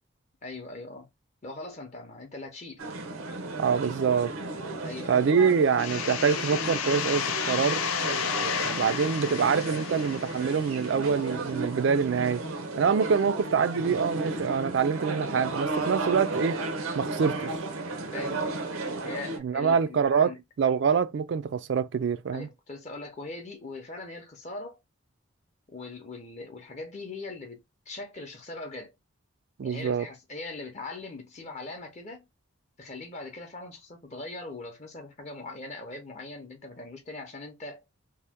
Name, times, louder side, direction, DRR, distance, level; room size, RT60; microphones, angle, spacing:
voice 1, 0.4-1.1 1.4-2.8 4.8-5.5 18.1-20.4 22.3-24.8 25.7-27.6 27.9-28.9 29.6-32.2 32.8-37.8, left 2 dB, 35° left, 0.6 m, -41 dB
sound 1, 2.8-19.4, right 3 dB, 85° right, 0.7 m, -34 dB
voice 2, 3.6-4.3 5.1-7.8 8.7-12.4 12.8-16.6 17.0-17.5 19.4-20.3 20.6-22.5 29.6-30.1, right 6 dB, 60° right, 0.3 m, -25 dB
sound 2, 5.8-11.3, left 8 dB, 85° left, 0.5 m, -32 dB
2.8 x 2.1 x 3.4 m
head